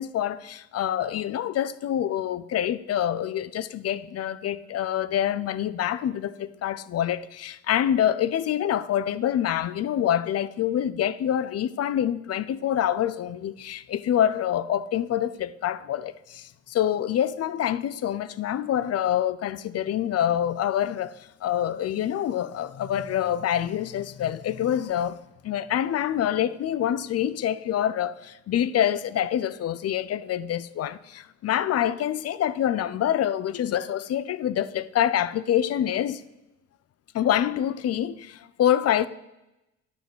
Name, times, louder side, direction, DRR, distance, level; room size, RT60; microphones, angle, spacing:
voice 1, 0.0-21.1 21.4-25.2 25.4-36.2 37.1-39.1, left 10 dB, 55° left, 0.5 m, -26 dB
9.5 x 4.8 x 7.8 m
cardioid pair, 90°, 30 cm